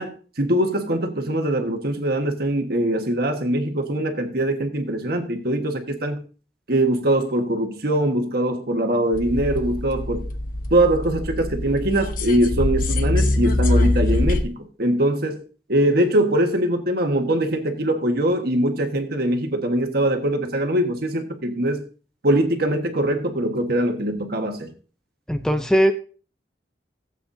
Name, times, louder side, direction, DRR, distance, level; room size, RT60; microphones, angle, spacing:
voice 1, 0.0-6.2 6.7-10.3 10.7-15.4 15.7-21.8 22.2-24.7, right 1 dB, 60° right, 1.5 m, -22 dB
sound 1, 9.1-14.4, left 1 dB, 50° left, 1.0 m, -23 dB
voice 2, 25.3-25.9, equal, 5° left, 0.6 m, -19 dB
17.0 x 8.2 x 2.7 m
head